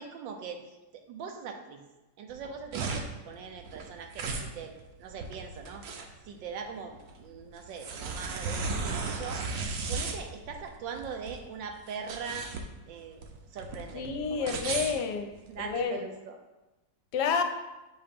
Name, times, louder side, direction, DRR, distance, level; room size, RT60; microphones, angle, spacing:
voice 1, 0.0-1.8 2.2-4.7 5.0-5.8 6.2-9.4 9.9-12.5 12.9-13.2 13.5-14.9 15.5-16.4, right 6 dB, 85° right, 5 dB, 1.4 m, -41 dB
sound 1, 2.3-15.8, right 4 dB, 65° right, 1.0 m, -36 dB
voice 2, 13.9-15.3 15.6-16.1 17.1-17.4, left 6 dB, 75° left, 6 dB, 1.2 m, -29 dB
7.0 x 2.9 x 5.1 m, 1.0 s
omnidirectional pair, 2.0 m